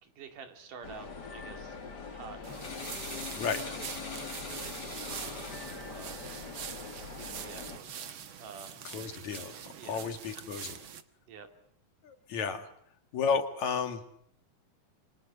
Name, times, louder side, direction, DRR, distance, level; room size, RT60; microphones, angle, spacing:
voice 1, 0.0-1.8 2.1-2.4 3.5-6.3 7.2-8.9 9.8-10.0 11.3-11.5, right 6 dB, 80° right, 6 dB, 4.2 m, -49 dB
sound 1, 0.8-7.8, left 5 dB, 35° left, 2.7 m, -42 dB
sound 2, 2.4-11.0, right 8 dB, 50° right, 1.7 m, -44 dB
voice 2, 8.9-9.5 9.8-10.8 12.0-12.7 13.1-14.0, left 5 dB, 65° left, 7 dB, 3.3 m, -32 dB
27.5 x 25.0 x 6.9 m, 0.69 s
omnidirectional pair, 3.6 m